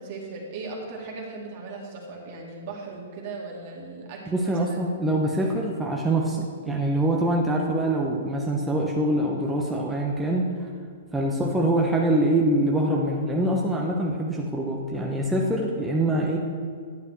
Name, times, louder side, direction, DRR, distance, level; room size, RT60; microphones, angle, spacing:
voice 1, 0.0-4.8, right 3 dB, 45° right, -1 dB, 2.0 m, -38 dB
voice 2, 4.3-10.5 11.1-16.4, right 1 dB, 10° right, -2 dB, 0.9 m, -24 dB
10.5 x 9.2 x 3.2 m, 2.1 s
figure-of-eight pair, 115°, 0 cm